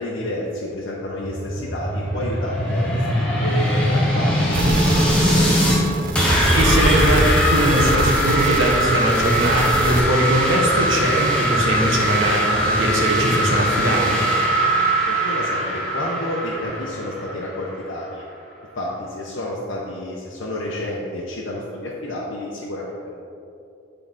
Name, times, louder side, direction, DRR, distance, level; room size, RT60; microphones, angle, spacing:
voice 1, 0.0-5.6 15.0-18.3 18.8-23.3, left 1 dB, 65° left, -5 dB, 0.8 m, -30 dB
sound 1, 1.2-5.8 6.1-17.7, equal, 5° left, 0.9 m, -21 dB
sound 2, 4.5-10.0, right 2 dB, 45° right, 0.5 m, -25 dB
voice 2, 6.5-14.3, right 1 dB, 75° right, -1 dB, 1.2 m, -21 dB
10.0 x 3.8 x 3.7 m, 2.6 s
head